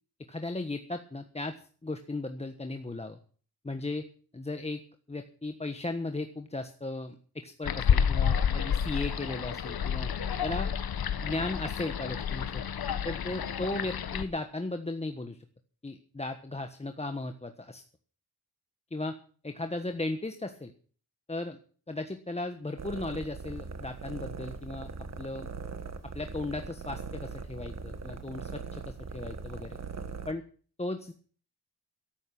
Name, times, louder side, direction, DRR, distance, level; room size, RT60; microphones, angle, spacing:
voice 1, 0.3-3.2 3.6-4.0 4.3-4.8 5.1-10.7 11.2-12.6 13.0-15.4 15.8-17.8 18.9-19.2 19.4-20.7 21.3-21.6 21.9-24.9 25.2-25.5 26.1-29.8 30.3-30.4 30.8-31.1, left 2 dB, 15° left, 6 dB, 1.3 m, -36 dB
sound 1, 7.6-14.2, left 8 dB, 70° left, 1.4 m, -29 dB
sound 2, 22.8-30.3, right 4 dB, 45° right, 1.7 m, -40 dB
14.0 x 12.0 x 6.0 m, 0.42 s
wide cardioid pair, 120°, 38 cm